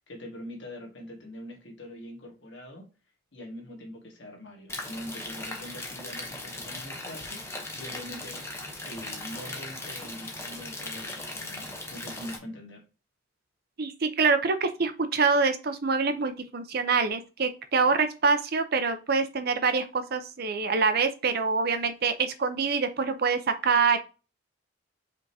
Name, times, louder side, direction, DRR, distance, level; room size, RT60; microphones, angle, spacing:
voice 1, 0.0-2.9 3.3-8.5 8.8-12.9, left 1 dB, 65° left, 1.7 m, -43 dB
sound 1, 4.7-12.4, left 2 dB, 15° left, 0.8 m, -38 dB
voice 2, 13.8-24.0, right 4 dB, 50° right, 0.6 m, -25 dB
5.1 x 3.6 x 2.7 m
head